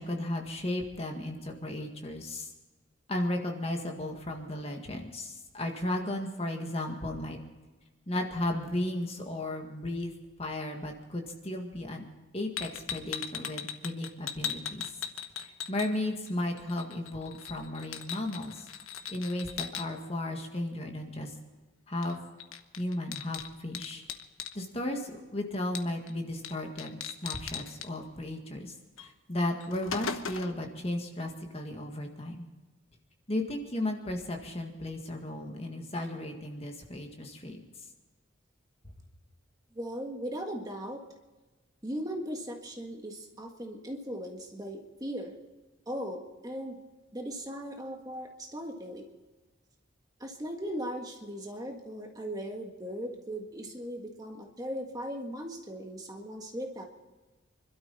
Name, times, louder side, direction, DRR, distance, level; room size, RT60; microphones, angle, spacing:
voice 1, 0.0-2.5 3.1-7.4 8.1-10.1 10.4-12.1 12.3-14.8 15.4-18.7 19.1-21.3 21.9-22.2 22.8-24.0 24.5-32.5 33.3-37.6, left 1 dB, 30° left, 2 dB, 1.9 m, -35 dB
sound 1, 12.6-16.3 16.6-19.9 22.0-22.1 22.4-24.6 25.8-26.1 26.4-26.5 26.8-27.9 29.0-29.1 29.5-30.6, left 8 dB, 90° left, 1.1 m, -38 dB
voice 2, 39.7-41.0 41.8-45.4 45.9-46.8 47.1-49.1 50.2-56.9, equal, 20° right, 2 dB, 1.6 m, -38 dB
25.0 x 12.5 x 4.2 m, 1.2 s
head